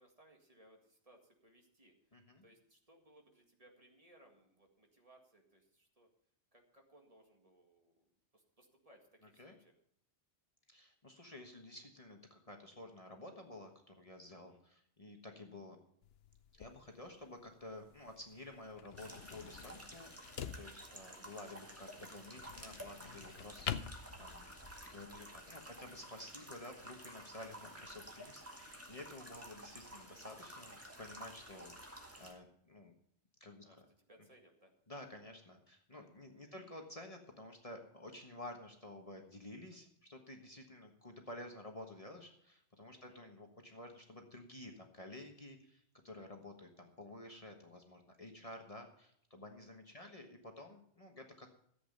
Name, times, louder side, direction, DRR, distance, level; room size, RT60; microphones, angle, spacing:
voice 1, 0.0-2.2 2.4-6.1 6.5-8.0 8.3-9.7 14.3-14.6 25.1-25.8 29.2-29.5 33.6-34.7 36.3-36.6 43.0-43.2 49.9-50.1, right 1 dB, 30° right, 2 dB, 2.1 m, -66 dB
voice 2, 2.1-2.4 9.4-9.6 10.7-15.8 16.5-24.5 24.8-32.9 33.4-33.6 34.9-51.5, left 1 dB, 30° left, 3 dB, 1.4 m, -52 dB
sound 1, 16.0-24.8, left 9 dB, 65° left, 0.9 m, -48 dB
sound 2, 19.0-32.3, equal, 10° right, 2.1 m, -52 dB
14.0 x 8.3 x 5.4 m, 0.70 s
omnidirectional pair, 1.2 m